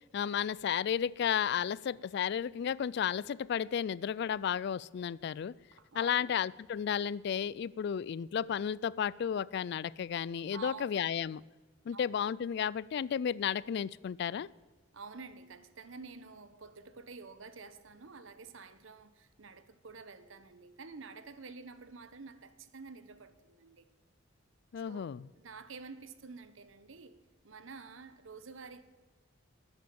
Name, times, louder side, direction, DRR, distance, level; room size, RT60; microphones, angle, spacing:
voice 1, 0.1-5.5 5.9-11.4 11.9-14.5 24.7-25.3, left 8 dB, 60° left, 0.3 m, -33 dB
voice 2, 5.7-6.3 10.5-11.0 11.9-12.1 14.9-23.9 24.8-28.8, right 4 dB, 90° right, 0.9 m, -49 dB
13.0 x 9.2 x 7.0 m
head